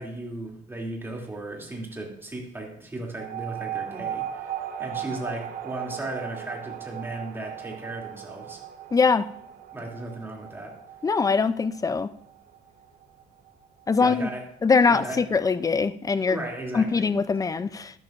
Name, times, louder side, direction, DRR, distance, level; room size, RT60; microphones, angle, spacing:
voice 1, 0.0-8.6 9.7-10.8 14.0-14.4 14.9-15.2 16.3-17.2, right 2 dB, 15° right, 2.8 m, -36 dB
sound 1, 3.2-14.1, right 10 dB, 60° right, 0.8 m, -37 dB
voice 2, 8.9-9.3 11.0-12.1 13.9-14.3 14.6-16.4 16.7-17.9, left 4 dB, 20° left, 0.5 m, -22 dB
12.5 x 11.5 x 2.5 m
cardioid pair, 110°, 17 cm